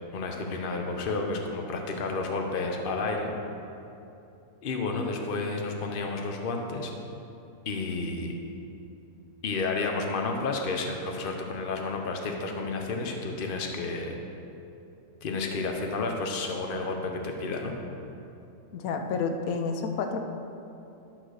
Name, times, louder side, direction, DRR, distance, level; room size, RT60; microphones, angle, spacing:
voice 1, 0.1-3.3 4.6-6.9 7.7-8.3 9.4-14.2 15.2-17.7, left 3 dB, 45° left, 3 dB, 0.9 m, -31 dB
voice 2, 18.7-20.2, left 5 dB, 90° left, 5 dB, 1.2 m, -29 dB
11.5 x 4.0 x 6.4 m, 2.8 s
omnidirectional pair, 1.4 m